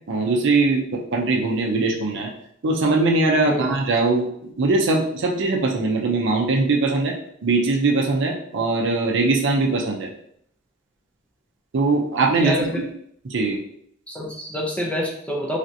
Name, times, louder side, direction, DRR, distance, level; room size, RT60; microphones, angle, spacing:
voice 1, 0.1-2.3 2.6-7.1 7.4-10.1 11.7-12.7 13.3-13.6, right 3 dB, 60° right, 1 dB, 0.5 m, -21 dB
voice 2, 12.4-12.8 14.1-15.6, equal, 5° left, -2 dB, 0.5 m, -27 dB
3.2 x 2.7 x 2.7 m, 0.69 s
head